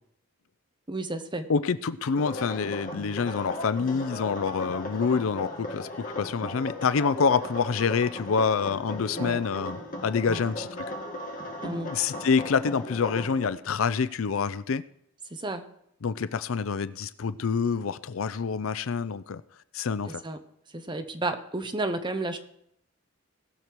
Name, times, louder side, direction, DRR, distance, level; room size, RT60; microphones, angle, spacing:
voice 1, 0.9-1.5 9.2-9.4 10.3-10.4 11.6-11.9 15.3-15.6 20.1-20.4 20.7-22.4, right 2 dB, 25° right, 1.0 m, -32 dB
voice 2, 1.5-10.7 11.9-14.8 16.0-19.4 19.7-20.2, left 5 dB, 75° left, 0.5 m, -27 dB
sound 1, 2.1-13.5, left 1 dB, 40° left, 2.1 m, -37 dB
19.0 x 6.7 x 4.6 m
head